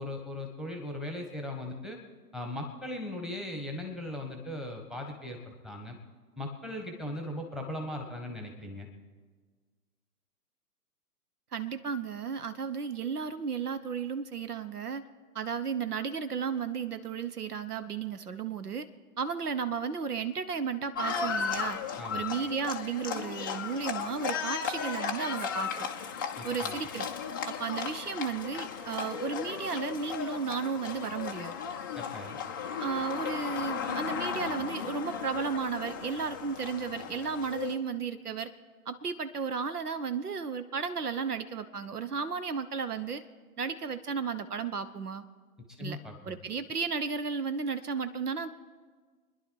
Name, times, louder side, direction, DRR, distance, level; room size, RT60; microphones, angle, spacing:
voice 1, 0.0-2.0 2.3-6.0 6.4-8.9 22.0-22.2 26.4-26.8 31.9-32.4 45.8-46.4, left 1 dB, ahead, 2 dB, 1.4 m, -38 dB
voice 2, 11.5-15.0 15.3-18.9 19.2-21.8 22.1-25.9 26.4-27.1 27.5-31.5 32.8-38.5 38.9-43.2 43.6-45.2 45.8-46.0 46.2-48.5, right 6 dB, 75° right, 12 dB, 1.2 m, -34 dB
Livestock farm animals working animals, 20.9-37.8, left 6 dB, 15° left, 0.4 m, -35 dB
28.5 x 11.0 x 4.7 m, 1.5 s
figure-of-eight pair, 125°, 47 cm